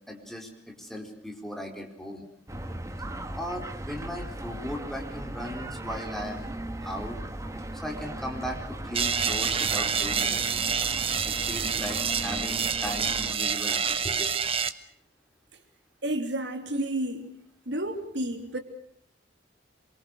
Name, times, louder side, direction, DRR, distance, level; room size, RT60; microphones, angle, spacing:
voice 1, 0.1-2.3 3.3-6.5 6.8-7.2 7.7-10.7 11.2-14.3, equal, ahead, 1 dB, 4.5 m, -37 dB
sound 1, 2.5-13.4, right 1 dB, 20° right, 1.7 m, -38 dB
sound 2, 8.9-14.7, right 6 dB, 35° right, 1.3 m, -27 dB
voice 2, 16.0-17.4 17.6-18.6, right 1 dB, 80° right, 5 dB, 3.4 m, -31 dB
27.0 x 24.0 x 6.5 m, 0.66 s
head